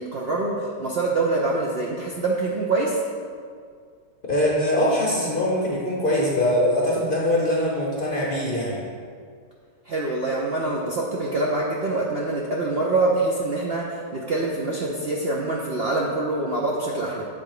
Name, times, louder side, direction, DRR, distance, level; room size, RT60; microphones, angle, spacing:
voice 1, 0.0-3.0 9.9-17.3, right 2 dB, 70° right, -4 dB, 0.5 m, -25 dB
voice 2, 4.3-8.8, left 1 dB, 40° left, -4 dB, 0.8 m, -22 dB
7.7 x 3.9 x 4.8 m, 2.1 s
omnidirectional pair, 1.8 m